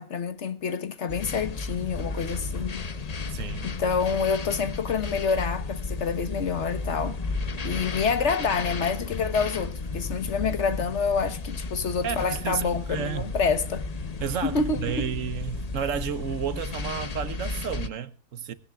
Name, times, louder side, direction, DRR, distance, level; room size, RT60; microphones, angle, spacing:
voice 1, 0.0-2.8 3.6-7.2 7.6-13.8 14.4-15.1, left 5 dB, 55° left, 1.3 m, -27 dB
sound 1, 1.1-17.9, left 3 dB, 35° left, 0.8 m, -33 dB
voice 2, 3.3-3.7 12.0-13.3 14.2-18.5, right 8 dB, 70° right, 1.2 m, -32 dB
19.0 x 17.5 x 2.3 m
omnidirectional pair, 1.4 m